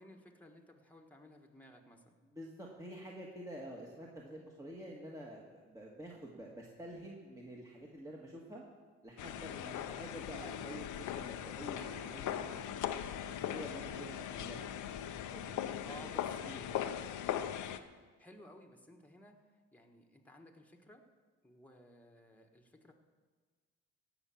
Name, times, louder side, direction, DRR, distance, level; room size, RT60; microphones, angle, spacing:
voice 1, 0.0-2.2 15.8-16.7 18.2-19.4 19.7-21.0 21.4-22.9, left 1 dB, 5° left, 2 dB, 1.5 m, -57 dB
voice 2, 2.2-8.6 9.0-14.8 15.3-17.2, right 1 dB, 10° right, -3 dB, 1.6 m, -49 dB
sound 1, 9.2-17.8, left 10 dB, 80° left, 0.7 m, -40 dB
16.5 x 5.8 x 7.2 m, 1.4 s
cardioid pair, 90°, 30 cm